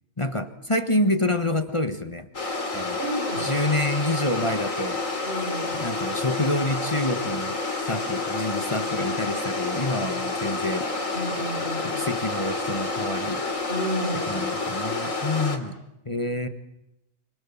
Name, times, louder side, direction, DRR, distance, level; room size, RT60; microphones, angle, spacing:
voice 1, 0.2-2.3 2.7-3.0 3.4-5.0 5.8-10.9 11.8-13.4 14.3-15.8 16.0-16.5, left 1 dB, 25° left, 8 dB, 1.5 m, -27 dB
sound 1, 2.3-15.6, left 3 dB, 80° left, 3.6 m, -29 dB
voice 2, 3.0-3.6 5.2-5.8 11.1-12.0 13.7-14.3, equal, 45° right, 4 dB, 5.0 m, -31 dB
28.5 x 26.5 x 7.3 m, 0.88 s
omnidirectional pair, 1.3 m